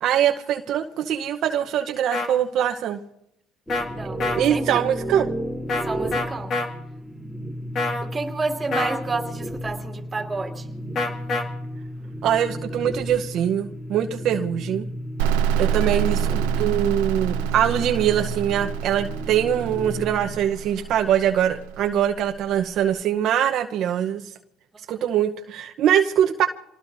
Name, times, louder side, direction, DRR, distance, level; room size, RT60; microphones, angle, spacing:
voice 1, 0.0-3.0 4.3-5.3 12.2-14.9 15.6-24.2 24.9-26.5, right 10 dB, 60° right, 4 dB, 0.9 m, -23 dB
sound 1, 2.1-2.3 3.7-3.9 4.2-4.4 5.7-5.8 6.1-6.7 7.8-8.1 8.7-9.0 11.0-11.4, left 3 dB, 50° left, 2.4 m, -25 dB
sound 2, 3.7-20.5, equal, 5° left, 2.5 m, -34 dB
voice 2, 3.8-4.2 4.5-4.8 5.8-6.6 8.0-10.7, right 3 dB, 25° right, 2 dB, 2.5 m, -30 dB
sound 3, 15.2-22.7, right 8 dB, 90° right, 0.9 m, -27 dB
27.5 x 19.0 x 2.7 m, 0.80 s
supercardioid pair, 90°, 0 cm